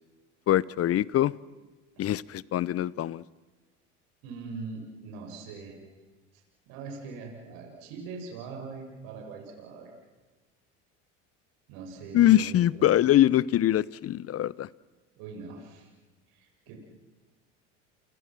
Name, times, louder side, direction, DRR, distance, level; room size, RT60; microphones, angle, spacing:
voice 1, 0.5-1.3 2.0-3.2 12.1-14.7, left 13 dB, 40° left, 22 dB, 0.8 m, -23 dB
voice 2, 4.2-5.8 6.7-9.9 11.7-12.9 15.2-15.9 16.3-16.8, right 4 dB, 70° right, 1 dB, 6.9 m, -42 dB
29.5 x 26.0 x 6.2 m, 1.3 s
supercardioid pair, 85°, 36 cm